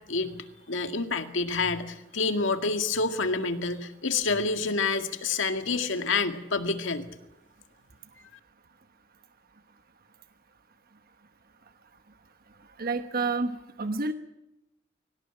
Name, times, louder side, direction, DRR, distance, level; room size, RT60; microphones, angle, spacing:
voice 1, 0.7-7.0, left 4 dB, 70° left, 7 dB, 2.0 m, -28 dB
voice 2, 12.8-13.5 13.8-14.1, right 3 dB, 50° right, 8 dB, 1.1 m, -28 dB
23.5 x 18.0 x 8.9 m, 0.91 s
head